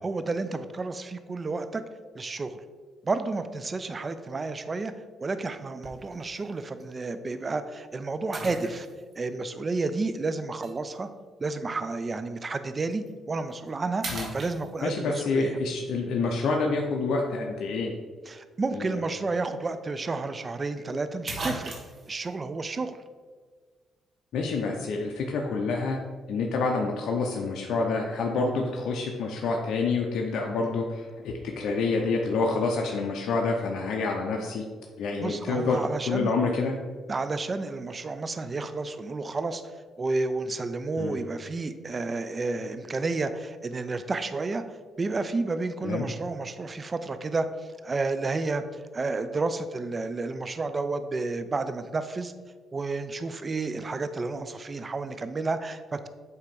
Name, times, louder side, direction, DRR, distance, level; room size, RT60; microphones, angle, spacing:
voice 1, 0.0-1.8 2.1-2.6 3.0-4.9 5.2-8.9 9.2-11.1 11.4-14.1 14.3-15.6 18.3-21.7 22.1-23.0 35.2-36.3 37.1-39.6 40.0-44.6 45.0-52.3 52.7-56.1, right 3 dB, 30° right, 10 dB, 0.4 m, -31 dB
sound 1, 5.8-6.1 6.8-6.9 8.3-9.2 10.6-10.7 12.9-13.1 13.5-13.7 14.0-15.1 19.2-19.3 19.6-19.7 20.8-20.9 21.3-22.1, right 2 dB, 50° right, 1.2 m, -37 dB
voice 2, 14.8-17.9 18.7-19.0 24.3-26.0 26.3-34.6 35.0-35.8 36.1-36.7 41.0-41.2 45.8-46.1, left 3 dB, 75° left, 0 dB, 0.7 m, -27 dB
8.1 x 2.9 x 5.2 m, 1.5 s
cardioid pair, 90°, 0 cm